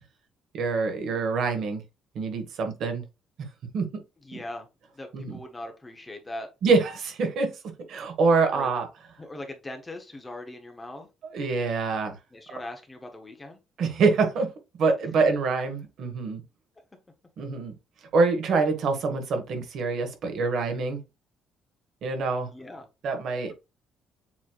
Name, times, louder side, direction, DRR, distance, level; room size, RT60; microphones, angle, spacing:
voice 1, 0.5-1.8 2.1-3.0 3.7-3.9 5.1-5.3 6.6-8.9 11.3-12.1 13.8-14.5 14.8-16.4 17.4-17.7 18.1-21.0 22.0-22.5 23.0-23.5, right 4 dB, 55° right, 1.2 m, -25 dB
voice 2, 4.2-4.7 4.9-6.5 8.5-8.7 9.2-11.1 12.3-13.6 22.5-22.9, left 1 dB, 10° left, 0.8 m, -40 dB
7.2 x 3.1 x 2.3 m
cardioid pair, 165°, 0 cm